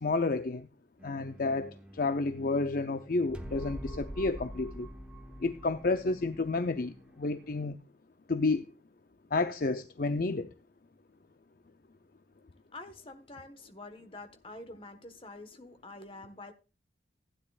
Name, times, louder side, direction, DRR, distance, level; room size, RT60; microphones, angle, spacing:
voice 1, 0.0-0.7 1.0-4.9 5.4-7.8 8.3-8.7 9.3-10.5, left 3 dB, 50° left, 0.5 m, -30 dB
sound 1, 1.0-7.7, equal, 5° right, 1.1 m, -46 dB
voice 2, 12.7-16.5, left 2 dB, 30° left, 1.2 m, -47 dB
15.5 x 9.8 x 2.4 m
head